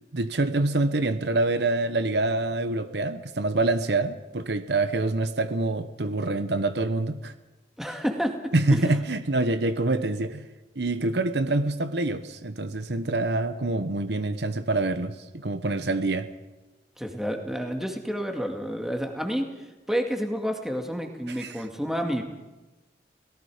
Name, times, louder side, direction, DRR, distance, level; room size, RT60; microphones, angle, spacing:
voice 1, 0.1-7.3 8.5-10.4 10.8-16.3 21.3-21.6, right 2 dB, 70° right, 11 dB, 1.0 m, -26 dB
voice 2, 7.8-8.8 17.0-19.5 19.9-22.2, equal, ahead, 3 dB, 2.2 m, -29 dB
28.5 x 18.0 x 5.1 m, 1.1 s
head